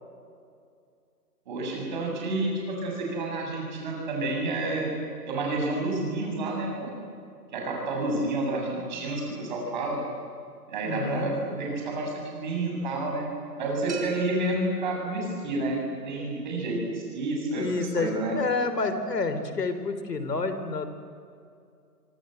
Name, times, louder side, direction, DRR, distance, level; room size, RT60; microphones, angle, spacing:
voice 1, 1.5-4.9 5.3-6.9 7.5-10.0 10.7-13.3 13.6-18.4, right 2 dB, 30° right, -1 dB, 7.7 m, -29 dB
voice 2, 10.8-11.3 17.6-20.9, left 3 dB, 75° left, 9 dB, 3.9 m, -29 dB
sound 1, 13.9-15.7, right 4 dB, 45° right, 5.4 m, -42 dB
26.5 x 26.5 x 8.0 m, 2.3 s
hypercardioid pair, 170°, 49 cm